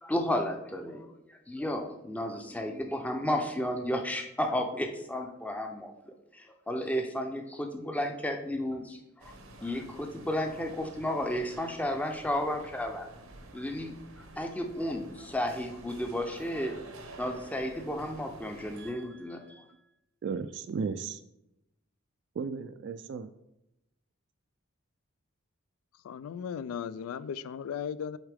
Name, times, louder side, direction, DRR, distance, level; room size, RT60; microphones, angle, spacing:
voice 1, 0.0-13.1 13.5-16.7 17.2-19.6, left 1 dB, 5° left, 4 dB, 0.5 m, -33 dB
sound 1, 9.2-18.9, right 2 dB, 80° right, 0.9 m, -50 dB
voice 2, 18.8-19.6 20.2-21.2 22.4-23.3, right 5 dB, 55° right, 9 dB, 0.3 m, -36 dB
voice 3, 26.0-28.2, left 7 dB, 90° left, 16 dB, 0.3 m, -36 dB
8.1 x 3.6 x 3.4 m, 0.85 s
head